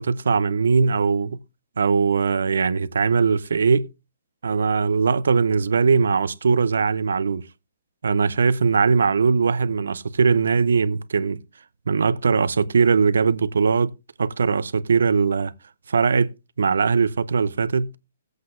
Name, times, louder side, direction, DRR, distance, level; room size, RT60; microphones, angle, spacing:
voice 1, 0.0-1.4 1.8-3.9 4.4-7.5 8.0-11.4 11.9-13.9 14.2-15.5 15.9-16.3 16.6-17.9, right 5 dB, 80° right, 0.6 m, -20 dB
19.0 x 8.0 x 2.5 m
hypercardioid pair, 175°, 0 cm